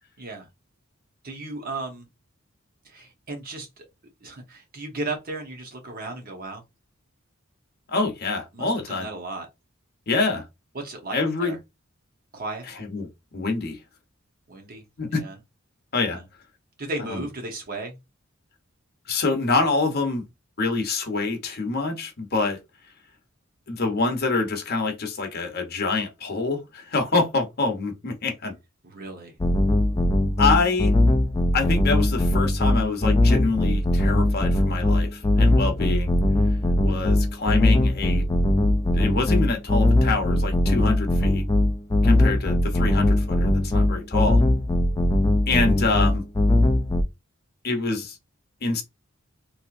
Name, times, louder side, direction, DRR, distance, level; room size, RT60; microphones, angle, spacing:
voice 1, 0.2-0.5 1.2-2.1 2.8-3.8 4.2-6.6 8.5-9.5 10.7-11.6 12.3-12.6 14.5-14.8 15.1-15.4 16.1-16.2 16.8-18.0 28.8-29.3, right 2 dB, 45° right, 1.0 m, -35 dB
voice 2, 7.9-9.1 10.1-10.4 11.1-11.6 12.7-13.8 15.0-15.2 15.9-16.2 17.1-17.2 19.1-20.2 20.6-22.6 23.7-28.5 30.4-31.0 31.5-36.1 36.8-38.2 38.9-41.5 42.0-44.4 45.5-46.2 47.6-48.2 48.6-48.8, left 3 dB, 50° left, 0.9 m, -26 dB
sound 1, 29.4-47.0, left 1 dB, 20° left, 0.4 m, -20 dB
3.2 x 2.8 x 2.5 m
head